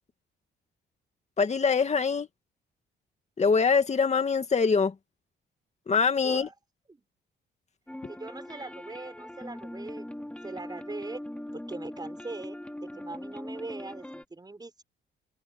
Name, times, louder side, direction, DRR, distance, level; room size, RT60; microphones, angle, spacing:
voice 1, 1.4-2.3 3.4-4.9 5.9-6.5, left 5 dB, 35° left, 2.2 m, -24 dB
sound 1, 7.9-14.2, left 1 dB, 5° left, 3.3 m, -41 dB
voice 2, 8.1-10.1 10.4-11.2 11.5-14.8, right 3 dB, 20° right, 6.5 m, -41 dB
open air
cardioid pair, 90°, 20 cm